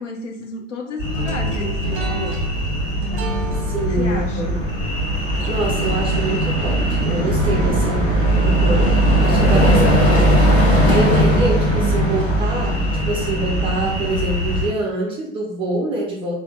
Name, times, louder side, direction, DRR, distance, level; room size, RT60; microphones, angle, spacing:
voice 1, 0.0-2.4 3.8-4.5 7.4-7.9 9.3-9.6, left 3 dB, 80° left, 2 dB, 0.7 m, -32 dB
sound 1, 1.0-14.7, right 1 dB, 35° left, 1.1 m, -19 dB
sound 2, 1.1-12.2, right 2 dB, 40° right, 0.8 m, -34 dB
voice 2, 3.7-4.6 5.5-9.8 10.2-10.4 10.9-16.4, right 2 dB, 15° right, -2 dB, 0.4 m, -25 dB
3.5 x 2.1 x 2.3 m, 0.69 s
hypercardioid pair, 110°, 37 cm